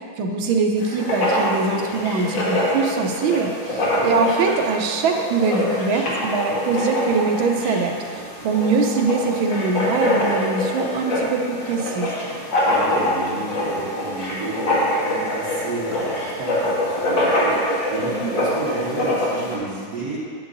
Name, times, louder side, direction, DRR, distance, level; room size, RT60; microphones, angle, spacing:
voice 1, 0.2-12.1, right 4 dB, 80° right, 3 dB, 1.5 m, -22 dB
Writing, 0.8-19.6, left 1 dB, 65° left, 2.2 m, -24 dB
voice 2, 3.6-4.1 12.6-20.2, right 2 dB, 50° right, -9 dB, 2.6 m, -31 dB
9.4 x 8.0 x 2.6 m, 2.1 s
omnidirectional pair, 2.2 m